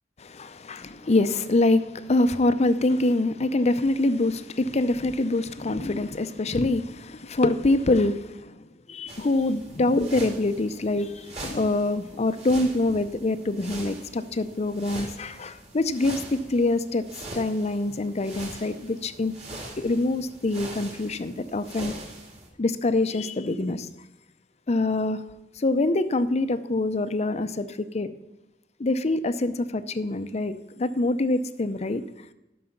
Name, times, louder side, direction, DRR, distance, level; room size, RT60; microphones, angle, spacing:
voice 1, 0.2-8.5 8.9-17.0 17.3-19.3 19.8-21.9 22.6-23.9 24.7-25.2 25.6-28.1 28.8-32.0, left 2 dB, 35° left, 0.6 m, -25 dB
sound 1, 9.1-22.5, right 1 dB, 35° right, 2.4 m, -42 dB
11.5 x 6.4 x 5.8 m
head